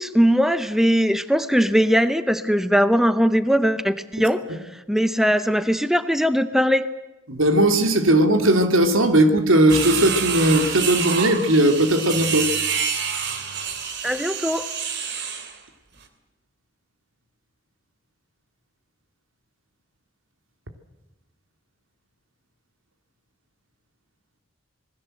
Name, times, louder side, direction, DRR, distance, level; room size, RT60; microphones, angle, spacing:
voice 1, 0.0-4.4 4.9-6.8 14.0-14.7, equal, ahead, 12 dB, 0.9 m, -20 dB
voice 2, 7.3-12.5, right 1 dB, 90° right, 7 dB, 2.9 m, -18 dB
sound 1, 9.7-15.6, right 6 dB, 60° right, 3.0 m, -27 dB
26.5 x 20.0 x 7.8 m, 1.0 s
head